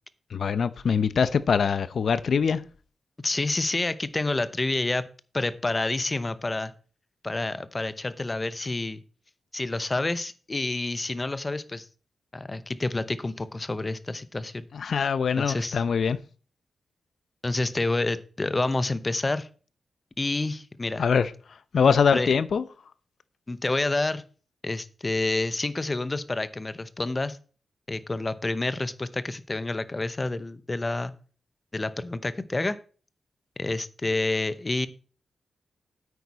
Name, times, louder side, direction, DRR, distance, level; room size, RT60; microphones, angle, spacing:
voice 1, 0.3-2.6 14.7-16.2 21.0-21.3 21.7-22.6, left 6 dB, 60° left, 0.7 m, -23 dB
voice 2, 3.2-5.1 5.3-6.7 7.2-9.0 9.5-11.9 12.3-14.7 15.4-15.8 17.4-19.5 20.2-21.0 22.1-22.3 23.5-24.2 24.6-27.4 27.9-31.1 31.7-32.8 33.6-34.9, left 2 dB, 25° left, 0.7 m, -28 dB
9.2 x 8.3 x 4.2 m
wide cardioid pair, 115°, 0 cm